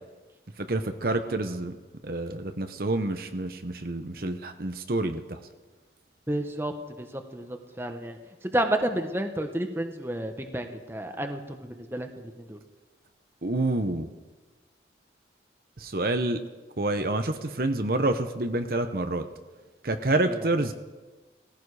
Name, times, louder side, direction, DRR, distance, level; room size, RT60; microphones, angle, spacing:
voice 1, 0.6-1.7 2.0-5.4 13.4-14.1 15.8-16.4 16.8-19.2 19.8-20.7, right 2 dB, 55° right, 7 dB, 1.0 m, -28 dB
voice 2, 6.3-12.6 20.2-20.4, right 1 dB, 15° right, 5 dB, 1.2 m, -31 dB
18.5 x 16.0 x 4.9 m, 1.2 s
head